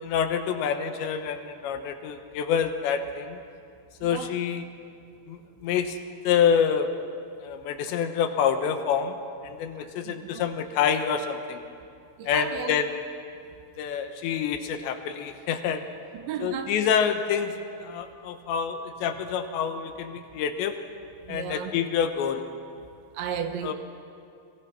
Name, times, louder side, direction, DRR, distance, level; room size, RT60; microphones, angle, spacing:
voice 1, 0.0-3.4 4.0-4.7 5.3-6.0 6.2-7.0 7.4-9.2 9.4-11.6 12.2-13.0 13.8-15.8 16.4-20.8 21.3-22.4 23.6-23.7, left 7 dB, 75° left, 7 dB, 3.3 m, -27 dB
voice 2, 10.1-10.4 12.2-12.8 16.2-16.8 21.3-21.7 23.2-23.7, right 8 dB, 75° right, 7 dB, 3.6 m, -34 dB
30.0 x 23.5 x 5.9 m, 2.4 s
omnidirectional pair, 5.4 m